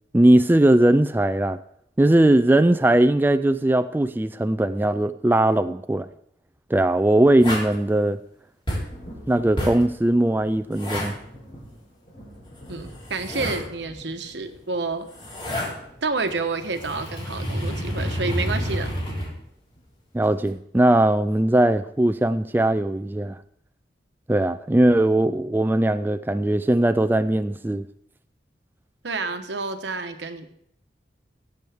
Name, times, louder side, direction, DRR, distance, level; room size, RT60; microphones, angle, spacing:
voice 1, 0.1-1.6 2.0-6.1 6.7-8.2 9.3-11.1 20.1-23.4 24.3-27.9, right 1 dB, 10° right, 0.3 m, -19 dB
sound 1, 7.4-7.8 8.7-9.0 9.6-9.9 10.7-11.1 12.7-13.7 14.9-15.7 16.3-19.3 20.2-20.5, equal, 30° left, 3.5 m, -29 dB
Thunder, 8.9-20.3 21.6-21.7 22.2-22.3, equal, 50° left, 3.5 m, -47 dB
voice 2, 12.7-15.1 16.0-18.9 29.0-30.5, right 3 dB, 75° right, 1.1 m, -29 dB
16.0 x 7.8 x 3.5 m
head